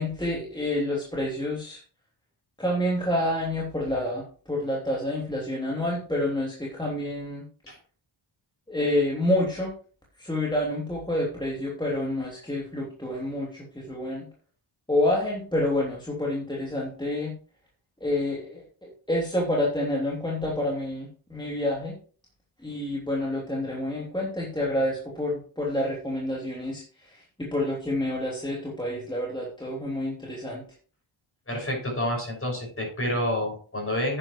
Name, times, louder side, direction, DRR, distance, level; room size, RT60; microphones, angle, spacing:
voice 1, 0.0-1.8 2.6-7.4 8.7-9.7 10.2-14.3 14.9-17.3 18.0-21.9 22.6-30.6, left 1 dB, 10° left, -3 dB, 2.9 m, -28 dB
voice 2, 31.5-34.2, left 1 dB, 25° left, 0 dB, 5.9 m, -28 dB
10.0 x 9.8 x 3.1 m, 0.41 s
cardioid pair, 80°, 50 cm